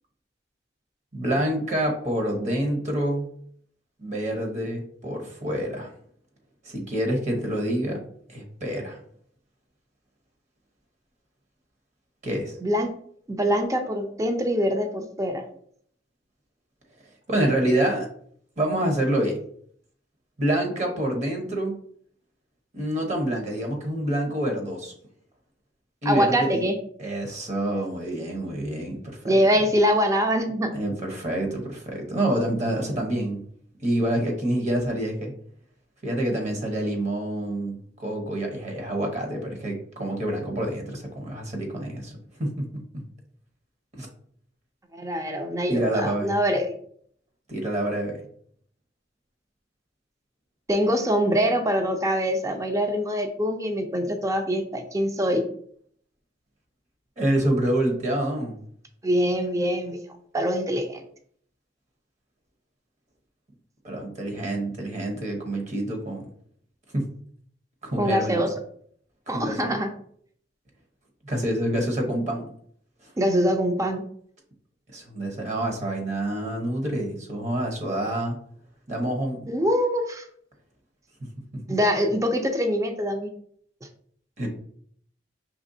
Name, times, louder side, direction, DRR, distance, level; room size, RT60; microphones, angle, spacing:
voice 1, 1.1-3.3 4.0-5.9 6.6-8.0 8.3-9.0 12.2-12.6 17.3-18.1 18.6-19.4 20.4-21.8 22.7-24.9 26.0-26.6 27.0-29.4 30.7-33.4 33.8-35.3 36.0-43.0 43.9-44.1 45.7-46.3 47.5-48.2 57.2-58.6 63.8-66.3 66.9-67.0 67.8-68.4 69.3-69.8 71.2-72.5 74.9-78.4 78.9-79.5 84.4-84.5, right 1 dB, 40° right, 1 dB, 1.0 m, -27 dB
voice 2, 12.6-12.9 13.3-15.4 26.0-26.7 29.3-30.7 44.9-46.7 50.7-55.4 59.0-60.0 60.3-61.0 68.0-68.5 69.3-69.9 73.2-74.0 79.5-80.2 81.7-83.3, equal, 15° right, 5 dB, 0.5 m, -24 dB
5.1 x 3.3 x 2.7 m, 0.62 s
head